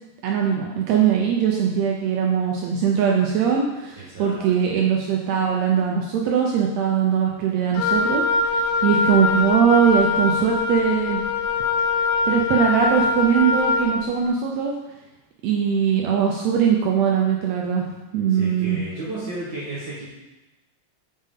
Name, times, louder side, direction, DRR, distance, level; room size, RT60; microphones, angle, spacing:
voice 1, 0.2-11.2 12.2-14.7 15.4-17.9 18.1-18.8, right 7 dB, 85° right, -1 dB, 1.5 m, -21 dB
voice 2, 4.0-4.5 18.3-20.1, right 2 dB, 65° right, -8 dB, 1.1 m, -33 dB
Wind instrument woodwind instrument, 7.7-14.0, left 4 dB, 80° left, 1.6 m, -22 dB
5.4 x 5.2 x 3.6 m, 1.1 s
omnidirectional pair, 3.6 m